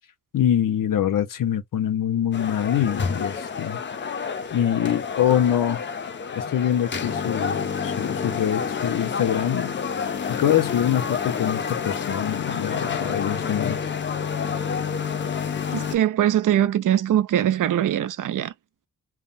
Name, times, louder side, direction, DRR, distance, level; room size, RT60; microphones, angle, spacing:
voice 1, 0.3-3.8 4.5-5.8 6.3-9.8 10.3-13.8, left 10 dB, 85° left, 0.7 m, -24 dB
sound 1, 2.3-16.0, left 6 dB, 35° left, 0.5 m, -29 dB
voice 2, 15.7-18.5, right 11 dB, 75° right, 0.5 m, -22 dB
3.4 x 2.1 x 2.6 m
wide cardioid pair, 170°, 32 cm